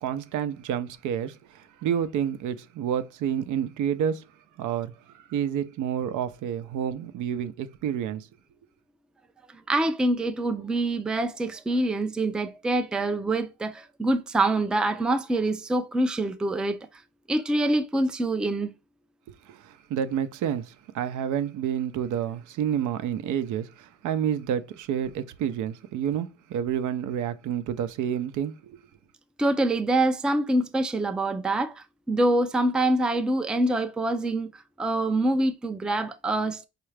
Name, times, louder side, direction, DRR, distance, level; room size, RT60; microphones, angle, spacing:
voice 1, 0.0-4.2 4.6-8.3 19.5-28.5, right 9 dB, 80° right, 0.5 m, -29 dB
voice 2, 9.7-16.8 17.3-18.7 29.4-34.5 34.8-36.7, right 1 dB, 5° right, 0.3 m, -25 dB
4.6 x 2.4 x 3.2 m
cardioid pair, 90°, 30 cm